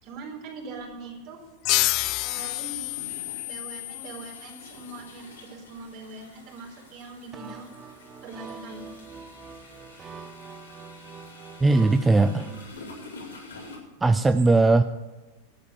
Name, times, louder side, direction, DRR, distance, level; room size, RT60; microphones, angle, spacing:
voice 1, 0.0-1.4 2.2-3.0 3.4-7.7 8.2-8.9 14.0-14.2, right 3 dB, 50° right, 0 dB, 4.1 m, -42 dB
sound 1, 0.7-0.9 2.2-13.8, left 2 dB, 85° left, 4.1 m, -48 dB
sound 2, 1.6-4.9, left 19 dB, 50° left, 0.4 m, -29 dB
sound 3, 7.3-12.7, right 6 dB, 30° right, 1.0 m, -44 dB
voice 2, 11.6-12.5 14.0-14.8, right 3 dB, 15° right, 9 dB, 0.5 m, -19 dB
11.5 x 8.4 x 8.5 m, 1.2 s
hypercardioid pair, 95°, 0 cm